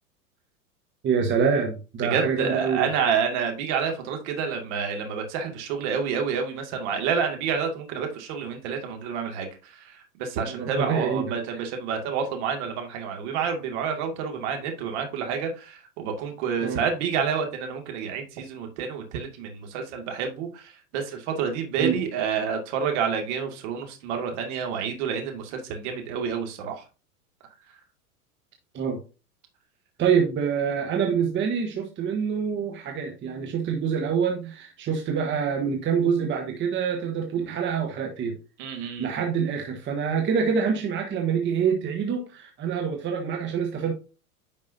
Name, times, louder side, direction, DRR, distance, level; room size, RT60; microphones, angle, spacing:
voice 1, 1.0-2.9 10.5-11.6 16.6-16.8 21.8-22.0 28.7-29.0 30.0-38.4 38.8-43.9, right 6 dB, 25° right, 3 dB, 1.2 m, -26 dB
voice 2, 2.0-26.8 38.6-39.1, right 6 dB, 50° right, 3 dB, 2.2 m, -29 dB
9.8 x 5.2 x 2.7 m, 0.34 s
figure-of-eight pair, 90°, 44 cm